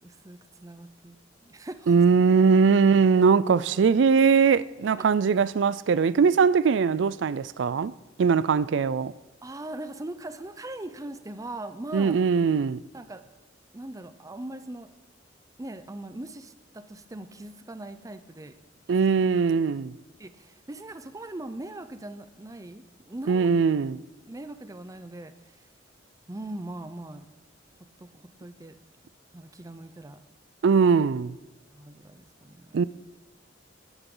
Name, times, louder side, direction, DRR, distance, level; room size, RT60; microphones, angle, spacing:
voice 1, 0.0-1.9 9.4-12.2 12.9-13.2 13.7-14.9 15.6-18.6 20.2-23.5 24.3-25.3 26.3-27.3 28.0-28.8 29.3-30.2 31.7-32.8, right 1 dB, 20° right, 0.6 m, -40 dB
voice 2, 1.9-7.9 8.2-9.1 11.9-12.8 18.9-19.9 23.3-24.0 30.6-31.4 32.7-32.8, right 5 dB, 70° right, 0.4 m, -21 dB
15.0 x 12.0 x 3.9 m
head